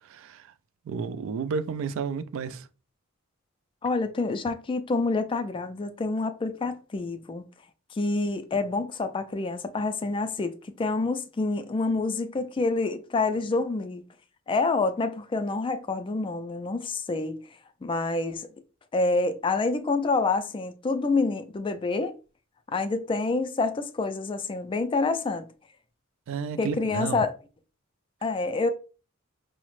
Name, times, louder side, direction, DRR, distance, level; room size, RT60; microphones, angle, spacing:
voice 1, 0.0-0.5 0.9-2.7 26.3-27.2, right 5 dB, 65° right, 0.3 m, -32 dB
voice 2, 3.8-7.4 7.9-14.0 14.5-17.4 17.8-18.5 18.9-22.1 22.7-25.5 26.6-27.3 28.2-28.7, left 3 dB, 25° left, 0.3 m, -27 dB
4.7 x 2.0 x 3.0 m
head